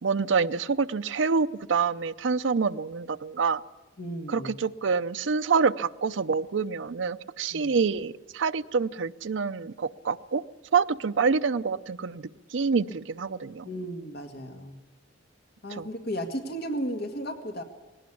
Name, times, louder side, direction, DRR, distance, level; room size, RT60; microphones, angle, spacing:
voice 1, 0.0-3.6 4.3-10.4 10.7-13.7 15.8-15.9, right 5 dB, 75° right, 11 dB, 0.6 m, -27 dB
voice 2, 4.0-4.5 7.5-7.8 13.7-14.8 15.6-17.6, equal, 55° left, 5 dB, 1.9 m, -34 dB
19.5 x 18.0 x 8.5 m, 1.2 s
head